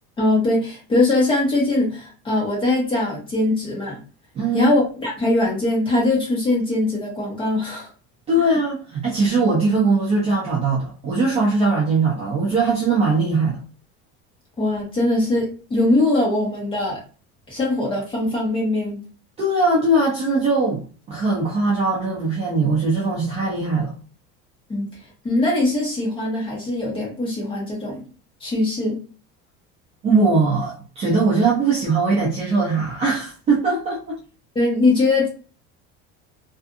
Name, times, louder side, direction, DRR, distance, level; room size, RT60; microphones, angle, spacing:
voice 1, 0.2-4.0 4.5-7.9 14.6-17.0 17.5-19.0 24.7-24.9 25.2-28.0 28.4-29.0 34.5-35.3, left 2 dB, 15° left, 0.9 m, -21 dB
voice 2, 4.3-4.7 8.3-13.6 19.4-23.9 30.0-34.2, right 3 dB, 20° right, 0.4 m, -20 dB
2.5 x 2.4 x 2.4 m
cardioid pair, 175°, 32 cm